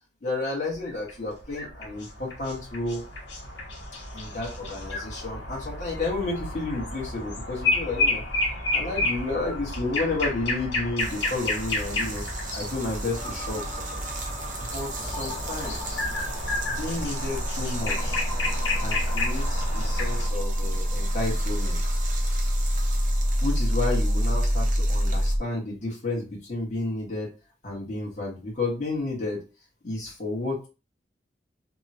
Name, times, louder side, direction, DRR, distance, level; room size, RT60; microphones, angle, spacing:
voice 1, 0.2-3.1 4.1-8.2 8.7-12.2 12.5-14.0 14.6-16.1 16.7-18.2 18.7-21.8 23.4-27.3 27.6-29.4 29.8-30.7, left 2 dB, 45° left, -5 dB, 1.4 m, -31 dB
sound 1, 0.8-20.3, left 2 dB, 75° left, 1.1 m, -31 dB
sound 2, 11.0-25.4, right 4 dB, 45° right, 0.6 m, -40 dB
sound 3, 13.1-25.4, equal, 15° left, 0.6 m, -27 dB
3.5 x 2.2 x 2.8 m, 0.31 s
head